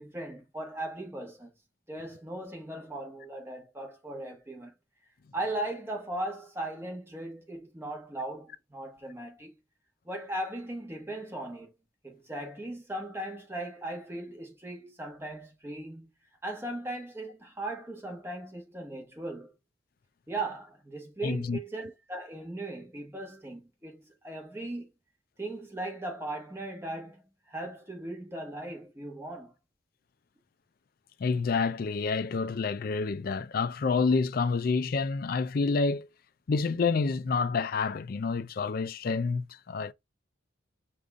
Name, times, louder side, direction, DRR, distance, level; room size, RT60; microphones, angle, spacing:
voice 1, 0.0-1.5 1.9-4.7 5.3-9.5 10.0-11.7 12.0-16.1 16.4-19.5 20.3-24.9 25.4-27.2 27.5-29.5, right 1 dB, 10° right, 1.2 m, -38 dB
voice 2, 21.2-21.6 31.2-36.1 36.5-39.9, left 4 dB, 50° left, 0.4 m, -28 dB
5.2 x 2.6 x 3.5 m
head